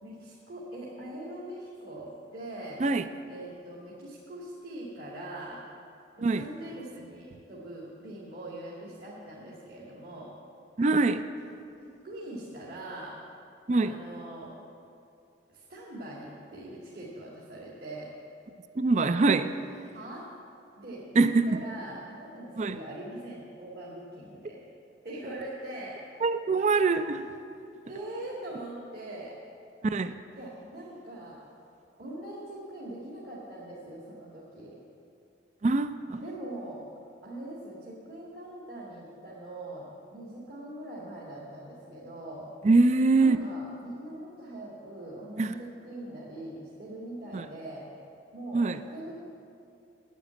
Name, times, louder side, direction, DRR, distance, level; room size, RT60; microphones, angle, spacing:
voice 1, 0.0-2.8 3.3-5.6 6.2-10.3 11.8-13.1 13.7-14.5 15.5-18.1 19.9-20.2 20.8-24.6 25.0-26.0 27.8-29.3 30.3-31.4 32.0-34.7 36.2-36.9 37.2-42.5 43.1-47.9 48.3-48.6 48.9-49.2, right 1 dB, 55° right, -6 dB, 2.1 m, -42 dB
voice 2, 10.8-11.2 13.7-14.0 18.8-19.6 21.2-21.5 22.6-22.8 26.2-27.3 29.8-30.1 35.6-36.2 42.6-43.4 45.4-45.5 47.3-47.5 48.5-48.8, right 3 dB, 40° right, 11 dB, 0.4 m, -24 dB
9.2 x 8.6 x 9.3 m, 2.6 s
head